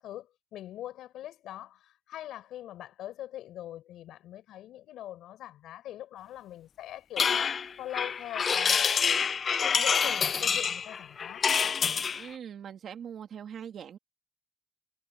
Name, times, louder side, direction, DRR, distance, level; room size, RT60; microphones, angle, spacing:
voice 1, 0.0-7.3 7.8-9.3 9.6-11.5, left 13 dB, 90° left, 6.3 m, -42 dB
sound 1, 7.2-12.3, left 6 dB, 50° left, 0.4 m, -27 dB
voice 2, 12.2-14.0, right 8 dB, 65° right, 2.5 m, -42 dB
cardioid pair, 90°, 0 cm